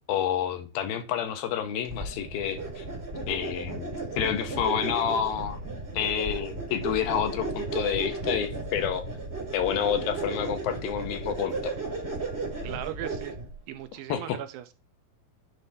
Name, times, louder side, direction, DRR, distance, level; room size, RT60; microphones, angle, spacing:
voice 1, 0.1-2.9 3.3-5.6 5.9-9.0 9.5-11.7 14.1-14.4, left 9 dB, 75° left, 2.6 m, -29 dB
sound 1, 1.9-13.6, right 3 dB, 40° right, 0.8 m, -34 dB
voice 2, 12.6-13.4 13.7-14.7, right 12 dB, 80° right, 2.3 m, -38 dB
9.7 x 3.4 x 4.0 m
omnidirectional pair, 4.3 m